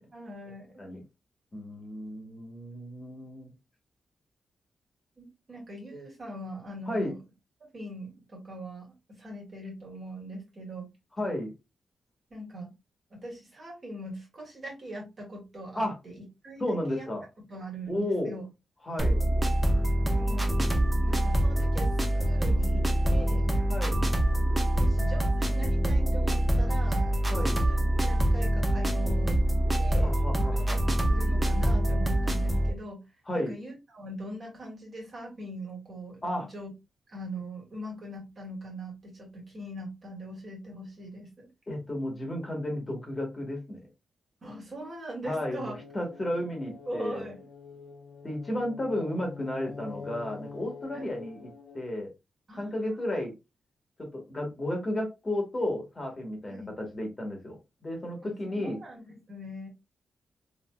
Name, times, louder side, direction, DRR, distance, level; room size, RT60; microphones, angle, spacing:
voice 1, 0.1-0.8 5.2-7.2 7.7-10.9 12.3-12.7 13.1-17.1 17.5-18.5 20.1-20.5 21.0-23.5 24.7-27.1 27.5-29.4 29.8-33.0 33.3-36.7 37.1-41.5 44.4-45.7 46.8-47.4 50.9-51.1 52.5-53.0 56.5-56.7 58.2-59.7, right 1 dB, 45° right, -2 dB, 1.6 m, -41 dB
voice 2, 1.5-3.5 6.9-7.1 11.2-11.5 15.7-15.9 16.6-17.2 17.9-18.4 18.8-19.2 23.7-24.1 27.3-27.6 30.0-30.8 33.3-33.5 36.2-36.5 41.7-43.9 45.2-47.3 48.2-51.5 51.7-52.1 52.6-53.3 54.0-57.6 57.8-58.8, left 1 dB, 30° left, 1 dB, 1.1 m, -33 dB
sound 1, 19.0-32.7, right 1 dB, 15° right, 0.7 m, -25 dB
sound 2, 45.2-51.9, left 4 dB, 50° left, 0.7 m, -46 dB
2.9 x 2.8 x 2.2 m, 0.24 s
cardioid pair, 95°, 0 cm